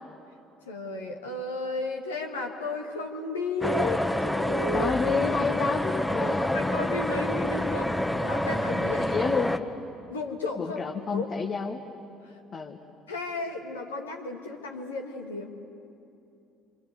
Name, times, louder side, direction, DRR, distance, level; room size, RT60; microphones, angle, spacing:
voice 1, 0.7-4.9 6.2-9.1 10.1-10.8 11.1-11.3 12.2-12.3 13.1-15.5, left 3 dB, 85° left, 2 dB, 2.1 m, -33 dB
sound 1, 3.6-9.6, left 1 dB, 5° left, 1.3 m, -27 dB
voice 2, 4.7-7.0 9.0-9.7 10.6-11.8 12.5-12.8, left 5 dB, 40° left, 1 dB, 1.6 m, -30 dB
27.0 x 26.5 x 8.2 m, 2.8 s
figure-of-eight pair, 55°, 0 cm